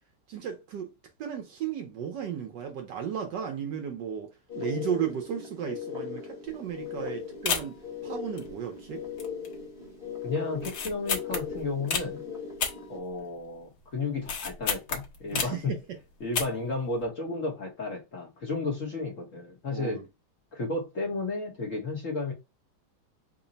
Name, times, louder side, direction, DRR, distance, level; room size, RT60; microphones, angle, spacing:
voice 1, 0.3-0.9 1.2-9.0 15.3-16.0 19.7-20.0, right 8 dB, 70° right, 1.2 m, -35 dB
sound 1, 4.5-13.0, left 6 dB, 25° left, 1.0 m, -39 dB
sound 2, 6.5-6.7 7.0-7.1 7.5-7.9 8.4-8.9 9.2-9.6 9.9-10.0 10.6-12.1 12.6-13.5 13.8-15.7 16.2-16.7 17.0-17.1, left 6 dB, 75° left, 1.5 m, -32 dB
voice 2, 10.2-12.2 12.9-15.7 16.2-20.0 20.5-22.3, left 3 dB, 50° left, 1.1 m, -33 dB
3.8 x 2.0 x 3.9 m
omnidirectional pair, 2.3 m